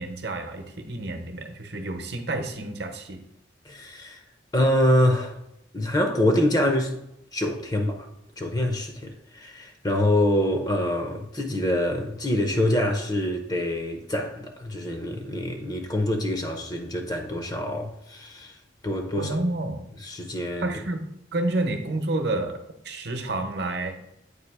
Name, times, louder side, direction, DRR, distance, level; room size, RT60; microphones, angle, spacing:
voice 1, 0.0-3.2 19.2-19.9 20.6-24.0, right 2 dB, 60° right, 0.9 m, -29 dB
voice 2, 3.6-4.2 4.5-5.4 5.7-7.0 7.3-8.1 8.4-18.6 18.8-19.4 20.0-20.7, left 1 dB, 20° left, 0.6 m, -25 dB
8.1 x 2.9 x 4.7 m
head